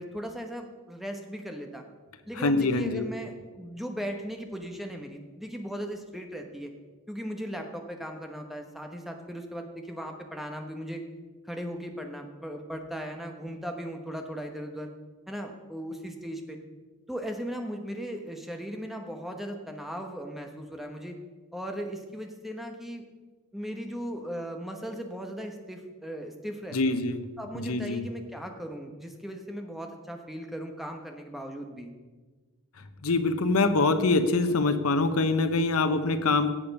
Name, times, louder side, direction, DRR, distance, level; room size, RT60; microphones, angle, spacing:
voice 1, 0.0-1.8 2.3-6.7 7.1-11.0 11.4-14.9 15.3-16.6 17.1-21.2 21.5-23.0 23.5-27.0 27.4-31.9, equal, ahead, 3 dB, 1.1 m, -37 dB
voice 2, 2.4-3.1 26.7-27.2 27.5-28.1 33.0-36.5, left 3 dB, 90° left, 10 dB, 0.9 m, -24 dB
17.0 x 6.9 x 5.4 m, 1.3 s
head